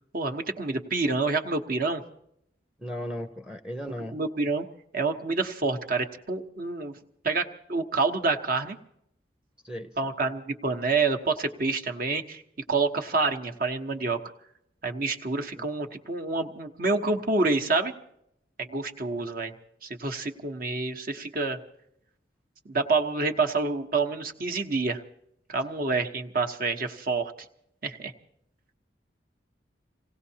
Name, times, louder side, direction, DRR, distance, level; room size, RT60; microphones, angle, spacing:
voice 1, 0.1-2.0 4.1-4.6 4.9-7.0 7.2-8.8 10.0-12.4 12.7-14.2 14.8-17.9 18.6-19.5 19.8-21.6 22.6-25.0 25.5-27.3 27.8-28.1, right 3 dB, 55° right, 5 dB, 1.1 m, -27 dB
voice 2, 2.8-4.1 9.6-9.9, equal, 5° right, 7 dB, 0.6 m, -36 dB
27.0 x 17.5 x 2.8 m, 0.74 s
head